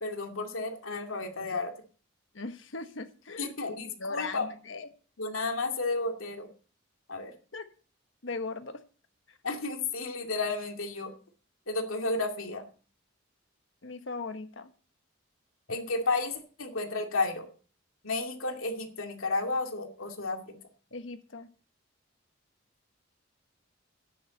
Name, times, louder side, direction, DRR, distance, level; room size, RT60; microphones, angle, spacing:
voice 1, 0.0-1.7 3.4-4.5 5.2-6.5 7.1-7.3 9.4-11.1 11.7-12.7 15.7-17.5 18.0-20.6, left 3 dB, 85° left, 3 dB, 2.4 m, -32 dB
voice 2, 2.3-4.9 7.5-7.7 8.2-8.8 9.3-9.4 13.8-14.7 20.9-21.5, left 3 dB, 70° left, 9 dB, 1.3 m, -39 dB
13.5 x 10.0 x 4.1 m, 0.40 s
head